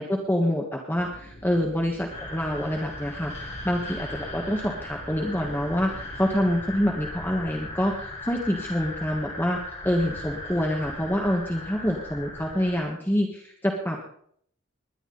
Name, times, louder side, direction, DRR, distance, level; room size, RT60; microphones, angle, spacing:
voice 1, 0.0-14.1, equal, 10° left, 0 dB, 1.4 m, -26 dB
sound 1, 1.0-6.6, equal, 85° left, 6.3 m, -47 dB
sound 2, 2.1-12.8, left 1 dB, 30° left, 4.0 m, -38 dB
20.0 x 10.5 x 4.0 m, 0.64 s
head